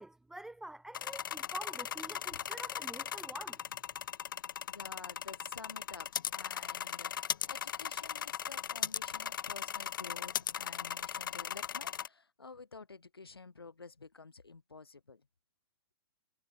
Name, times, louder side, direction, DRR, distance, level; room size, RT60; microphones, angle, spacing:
voice 1, 0.0-3.6, right 1 dB, 5° right, 0.6 m, -47 dB
sound 1, 0.9-12.1, left 9 dB, 55° left, 1.9 m, -38 dB
voice 2, 4.7-15.3, left 4 dB, 75° left, 4.5 m, -51 dB
figure-of-eight pair, 115°, 13 cm